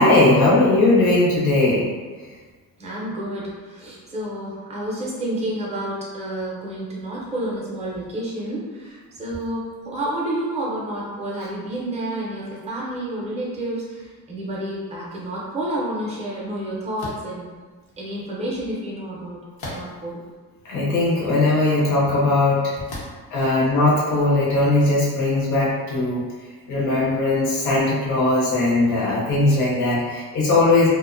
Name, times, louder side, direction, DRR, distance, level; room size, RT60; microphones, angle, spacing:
voice 1, 0.0-1.9 20.6-22.7 23.3-30.9, left 2 dB, 55° left, -6 dB, 0.6 m, -19 dB
voice 2, 2.8-17.5 18.0-19.4 19.7-20.2 23.3-23.5, right 1 dB, 20° right, -5 dB, 0.5 m, -30 dB
sound 1, 17.0-17.3 19.6-20.1 20.8-20.9 22.9-23.3, left 1 dB, 90° left, 0.8 m, -35 dB
2.5 x 2.1 x 2.4 m, 1.4 s
cardioid pair, 155°, 36 cm